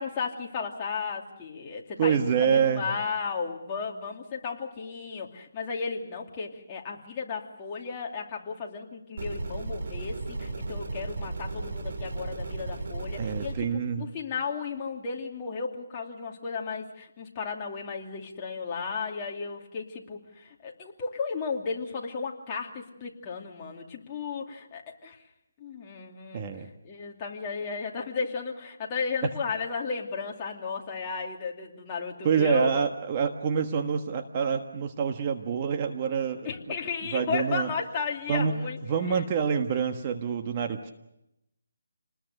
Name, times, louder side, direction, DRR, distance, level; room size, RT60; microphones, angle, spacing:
voice 1, 0.0-25.2 25.6-26.5 26.8-32.9 36.4-38.8 39.1-39.2, left 5 dB, 25° left, 0 dB, 2.7 m, -34 dB
voice 2, 2.0-2.9 13.2-14.1 26.3-26.7 32.2-36.5 37.1-37.7 38.3-38.6 38.9-40.9, right 6 dB, 30° right, 5 dB, 1.4 m, -26 dB
sound 1, 9.2-13.6, right 3 dB, 55° right, 4.5 m, -35 dB
28.5 x 20.5 x 6.7 m, 0.84 s
hypercardioid pair, 160°, 0 cm